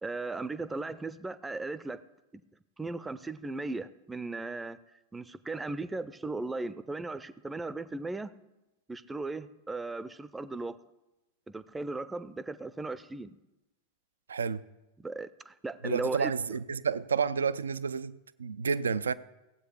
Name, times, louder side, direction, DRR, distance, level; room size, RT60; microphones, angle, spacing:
voice 1, 0.0-2.0 2.3-2.4 2.8-4.8 5.1-8.3 8.9-10.8 11.5-13.4 15.0-16.6, right 3 dB, 10° right, 0.5 m, -37 dB
voice 2, 14.3-14.6 15.8-19.1, right 6 dB, 70° right, 0.4 m, -30 dB
16.0 x 8.2 x 4.8 m
figure-of-eight pair, 90°, 0 cm